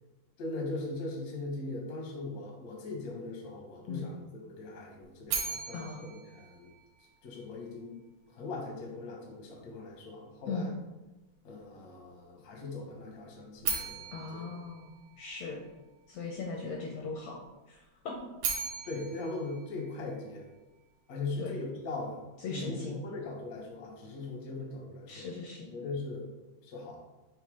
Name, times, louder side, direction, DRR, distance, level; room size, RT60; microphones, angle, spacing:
voice 1, 0.4-6.7 7.2-8.0 8.3-10.7 11.4-14.6 18.8-20.5 21.1-22.2 22.5-25.3 25.7-26.3 26.6-27.0, left 3 dB, 60° left, -1 dB, 0.9 m, -40 dB
sound 1, 5.3-7.4 13.6-15.8 18.1-20.5, right 5 dB, 65° right, 1.5 m, -38 dB
voice 2, 5.7-6.1 10.5-10.7 14.1-15.6 16.1-17.4 17.7-18.1 21.4-21.6 22.4-23.0 25.1-25.7, left 4 dB, 75° left, 0 dB, 1.7 m, -38 dB
5.9 x 3.3 x 4.9 m, 1.1 s
omnidirectional pair, 3.8 m